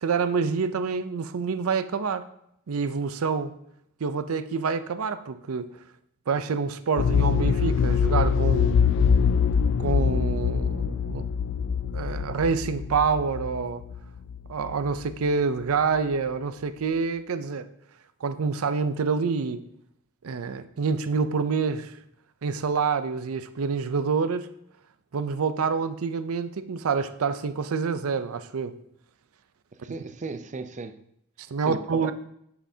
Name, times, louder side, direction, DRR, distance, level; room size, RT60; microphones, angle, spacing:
voice 1, 0.0-2.2 2.7-3.5 4.0-5.7 6.3-8.8 9.8-11.3 11.9-13.8 14.5-17.7 18.2-19.6 20.2-21.9 22.4-24.5 25.1-28.7 31.4-32.1, right 5 dB, 90° right, 0.5 m, -27 dB
sound 1, 7.0-14.7 15.0-15.1, left 6 dB, 60° left, 0.3 m, -24 dB
voice 2, 29.8-31.0 31.6-32.1, right 3 dB, 35° right, 0.5 m, -35 dB
9.6 x 6.2 x 2.7 m
head